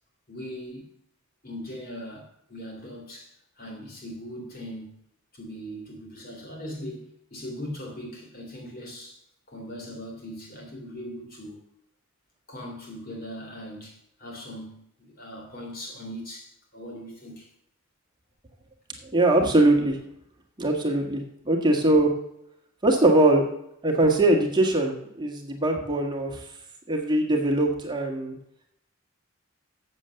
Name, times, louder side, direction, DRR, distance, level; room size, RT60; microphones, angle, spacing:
voice 1, 0.3-0.9 1.4-3.3 3.6-4.9 5.3-9.2 9.5-11.6 12.5-17.5, equal, 45° left, 3.0 m, -40 dB
voice 2, 19.1-20.0 20.6-22.1 22.8-23.4 23.8-26.4 26.9-28.4, right 2 dB, 20° right, 1.6 m, -21 dB
7.7 x 7.2 x 6.9 m
head